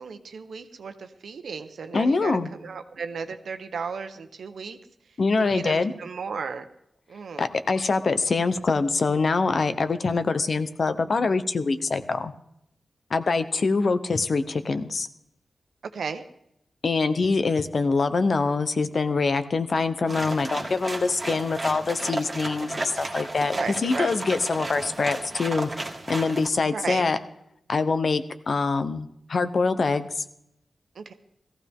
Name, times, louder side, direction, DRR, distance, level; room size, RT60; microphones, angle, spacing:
voice 1, 0.0-4.8 5.5-6.7 7.1-7.4 15.9-16.2 23.5-24.1 26.7-27.1 30.9-31.1, right 5 dB, 90° right, 8 dB, 1.0 m, -35 dB
voice 2, 1.9-2.5 5.2-5.9 7.4-12.3 13.1-15.1 16.8-25.7 26.1-27.2 27.7-30.2, left 4 dB, 50° left, 11 dB, 0.9 m, -24 dB
sound 1, 20.1-26.5, right 2 dB, 30° right, 1.8 m, -33 dB
18.0 x 15.0 x 3.6 m, 0.76 s
wide cardioid pair, 135°, 0 cm